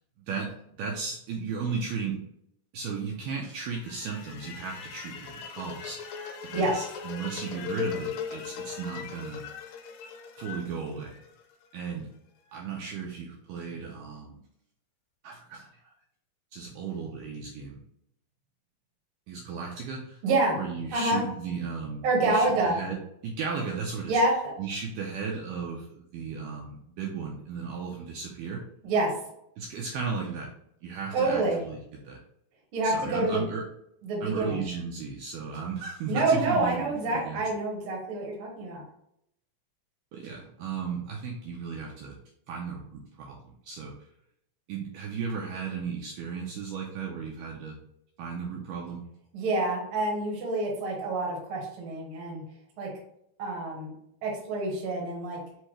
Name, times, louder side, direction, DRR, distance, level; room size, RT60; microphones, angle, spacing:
voice 1, 0.8-2.2 2.7-9.4 10.4-11.2 11.7-12.1 12.5-14.4 15.2-15.9 16.5-17.8 19.3-20.2 20.6-23.0 23.2-24.2 24.6-28.6 29.6-30.5 30.8-31.8 32.1-32.2 32.8-33.7 34.2-37.4 40.1-42.2 42.5-43.9 44.7-47.8 48.2-49.0, right 5 dB, 80° right, -1 dB, 2.0 m, -35 dB
sound 1, 3.7-11.8, left 8 dB, 80° left, 2.2 m, -39 dB
voice 2, 20.2-20.6 20.9-21.2 22.0-22.8 24.1-24.5 28.8-29.1 31.1-31.6 32.7-33.4 34.0-34.6 36.1-38.8 49.3-52.4 52.8-52.9 53.4-53.9 54.2-55.4, right 2 dB, 60° right, -1 dB, 1.5 m, -27 dB
5.8 x 2.7 x 3.1 m, 0.75 s
omnidirectional pair, 4.2 m